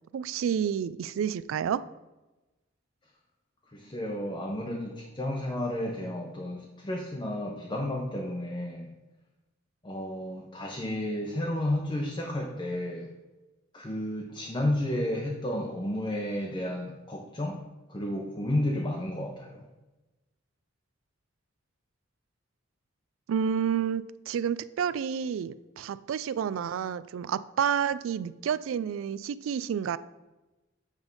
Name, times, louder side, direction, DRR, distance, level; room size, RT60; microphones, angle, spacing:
voice 1, 0.1-1.8 23.3-30.0, right 8 dB, 80° right, 17 dB, 0.3 m, -30 dB
voice 2, 3.7-8.9 9.8-13.1 13.7-17.6 17.9-19.6, left 1 dB, 25° left, 0 dB, 0.7 m, -32 dB
8.2 x 3.5 x 5.4 m, 1.1 s
head